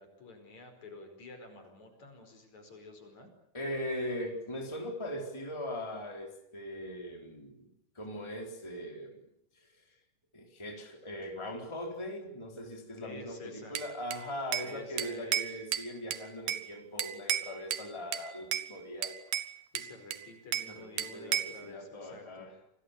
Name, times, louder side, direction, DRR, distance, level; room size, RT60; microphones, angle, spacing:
voice 1, 0.0-3.3 13.0-13.8 14.6-15.6 19.7-22.5, left 3 dB, 55° left, 6 dB, 6.3 m, -50 dB
voice 2, 3.5-7.7 7.9-9.2 9.5-9.9 10.3-19.2 20.6-22.5, left 1 dB, 10° left, 2 dB, 4.0 m, -40 dB
Bell / Glass, 13.8-14.7 15.0-16.7 17.0-17.9 18.1-18.7 19.0-20.7 21.0-21.6, right 11 dB, 80° right, 3.0 m, -34 dB
28.0 x 20.5 x 8.4 m, 0.74 s
omnidirectional pair, 4.0 m